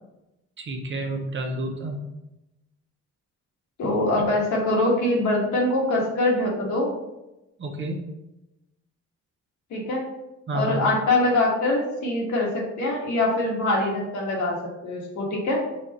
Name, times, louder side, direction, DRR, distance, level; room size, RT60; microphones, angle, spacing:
voice 1, 0.6-2.0 7.6-8.1 10.5-10.8, right 1 dB, 40° right, 3 dB, 0.7 m, -30 dB
voice 2, 3.8-6.9 9.7-10.0 10.5-14.6 14.8-15.6, left 2 dB, 75° left, -2 dB, 1.5 m, -23 dB
4.1 x 2.5 x 4.5 m, 0.94 s
cardioid pair, 90°, 30 cm